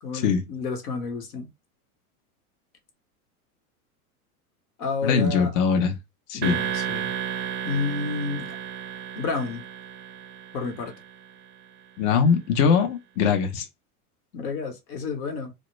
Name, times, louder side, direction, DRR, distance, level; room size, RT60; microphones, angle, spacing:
voice 1, 0.0-1.5 4.8-5.6 6.3-7.1 7.6-8.6 9.2-9.7 10.5-10.9 14.3-15.5, left 4 dB, 80° left, 1.0 m, -30 dB
voice 2, 5.0-5.9 6.3-6.6 12.0-13.7, left 6 dB, 45° left, 0.6 m, -21 dB
sound 1, 6.4-11.3, right 9 dB, 25° right, 0.4 m, -33 dB
2.1 x 2.0 x 3.0 m
hypercardioid pair, 105°, 44 cm